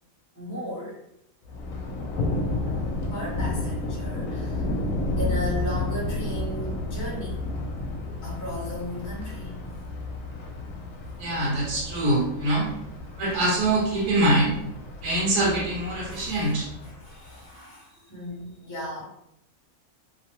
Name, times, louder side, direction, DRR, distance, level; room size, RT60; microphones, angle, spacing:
voice 1, 0.3-1.0 2.6-4.7 5.1-7.4 8.2-9.5 16.0-19.1, equal, 15° left, -5 dB, 0.7 m, -36 dB
Thunder, 1.5-17.4, left 2 dB, 70° left, 1.0 m, -32 dB
voice 2, 11.2-12.7 13.2-14.6 15.0-16.6, right 1 dB, 85° right, -3 dB, 1.4 m, -24 dB
3.0 x 2.1 x 2.9 m, 0.79 s
omnidirectional pair, 1.6 m